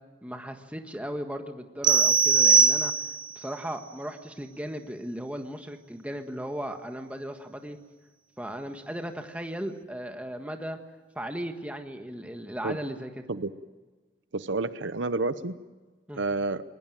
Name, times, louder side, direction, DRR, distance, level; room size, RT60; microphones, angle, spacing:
voice 1, 0.2-2.9 3.3-7.8 8.4-10.8 11.1-13.2 16.1-16.2, equal, 5° right, 5 dB, 1.5 m, -36 dB
sound 1, 1.8-3.4, right 5 dB, 25° right, 0.7 m, -20 dB
voice 2, 14.3-15.5 16.2-16.6, right 3 dB, 70° right, 13 dB, 0.8 m, -29 dB
21.0 x 20.5 x 9.1 m, 1.3 s
head